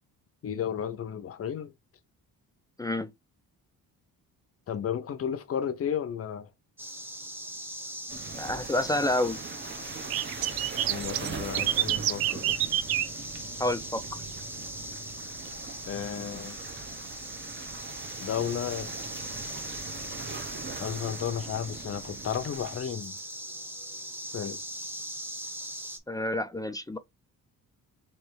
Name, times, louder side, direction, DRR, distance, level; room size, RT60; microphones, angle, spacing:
voice 1, 0.4-1.7 4.7-6.5 10.9-12.7 15.9-16.6 18.2-18.9 20.8-23.2 24.3-24.6, left 8 dB, 40° left, 0.7 m, -33 dB
voice 2, 2.8-3.1 8.3-9.4 13.6-14.0 26.1-27.0, left 1 dB, 10° left, 0.4 m, -28 dB
sound 1, 6.8-26.0, equal, 5° right, 1.0 m, -40 dB
sound 2, 8.1-22.8, right 5 dB, 30° right, 0.9 m, -42 dB
sound 3, 10.1-14.3 14.6-14.9 15.4-15.5 16.7-16.8 17.2-17.3 18.5-18.6 19.2-19.3, right 12 dB, 80° right, 0.7 m, -28 dB
3.3 x 3.2 x 4.6 m
cardioid pair, 130°, 35 cm